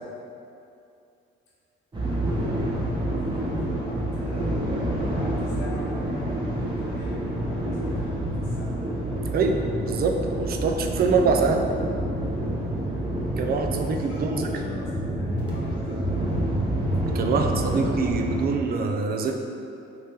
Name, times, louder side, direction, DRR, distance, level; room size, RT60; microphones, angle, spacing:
sound 1, 1.9-18.5, right 1 dB, 25° right, 0.9 m, -28 dB
voice 1, 2.4-8.9 12.8-13.1 14.1-16.4, left 1 dB, 90° left, -5 dB, 0.9 m, -41 dB
voice 2, 9.3-11.6 13.4-14.5 17.1-19.4, right 4 dB, 50° right, 4 dB, 0.4 m, -24 dB
3.2 x 2.9 x 3.3 m, 2.6 s
cardioid pair, 90°, 20 cm